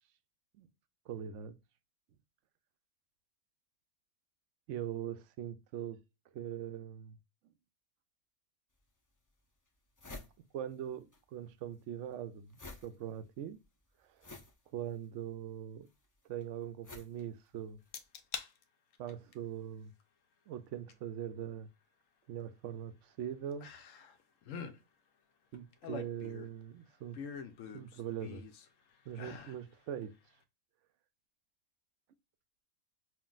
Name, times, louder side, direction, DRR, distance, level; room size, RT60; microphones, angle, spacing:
voice 1, 1.1-1.6 4.7-6.0 6.3-7.2 10.5-13.6 14.2-14.3 14.7-15.9 16.3-17.8 19.0-19.9 20.5-21.7 22.3-23.7 25.5-27.2 27.7-28.4 29.1-30.2, right 10 dB, 70° right, 0.8 m, -42 dB
sound 1, 8.7-8.8 9.4-9.5 9.7-11.2 11.5-18.0, left 2 dB, 30° left, 0.3 m, -52 dB
sound 2, 17.9-18.5 18.9-19.3 20.9-21.0 23.6-24.2 24.4-24.8 25.5-26.6 27.1-28.7 29.1-29.6 30.0-30.1, left 6 dB, 70° left, 1.0 m, -44 dB
5.6 x 2.5 x 2.3 m
omnidirectional pair, 1.5 m